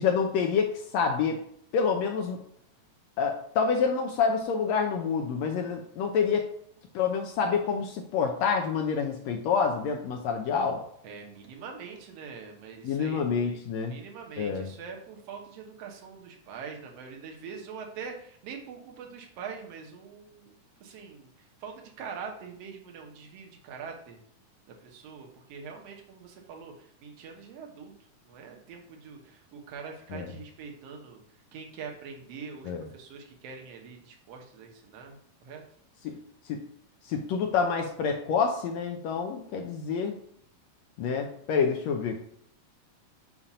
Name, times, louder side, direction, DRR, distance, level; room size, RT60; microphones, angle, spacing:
voice 1, 0.0-1.4 1.7-2.4 3.2-6.5 6.9-10.8 12.8-13.9 14.4-14.7 30.1-30.3 32.7-32.8 36.0-36.2 36.5-36.6 37.0-40.1 41.0-42.2, left 6 dB, 80° left, 3 dB, 1.6 m, -27 dB
voice 2, 11.0-13.2 13.8-24.2 24.7-27.9 28.3-31.2 31.5-35.6, right 6 dB, 65° right, 2 dB, 1.9 m, -43 dB
7.2 x 2.6 x 5.5 m, 0.68 s
omnidirectional pair, 3.5 m